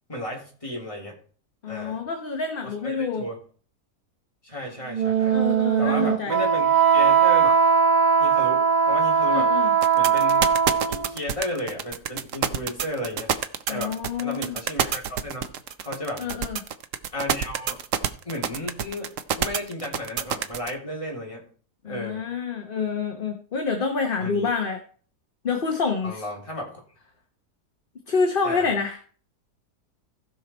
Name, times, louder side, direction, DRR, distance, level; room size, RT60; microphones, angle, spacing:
voice 1, 0.1-1.2 1.7-2.0 2.6-3.4 4.4-5.4 5.8-7.6 8.2-9.5 9.9-10.5 10.9-13.3 13.7-15.5 15.8-16.3 17.1-17.8 18.2-21.4 21.8-22.2 24.2-24.5 26.0-26.8 28.4-28.7, left 1 dB, 20° left, -2 dB, 3.1 m, -34 dB
voice 2, 1.6-3.3 5.3-6.4 9.3-9.7 13.7-14.6 16.2-16.6 21.8-24.8 25.4-26.2 28.1-29.0, left 5 dB, 40° left, 4 dB, 1.1 m, -27 dB
Wind instrument woodwind instrument, 4.9-11.1, right 6 dB, 30° right, 1.2 m, -20 dB
sound 1, 9.8-20.7, right 8 dB, 60° right, 1.0 m, -26 dB
15.5 x 5.7 x 4.3 m, 0.43 s
omnidirectional pair, 1.7 m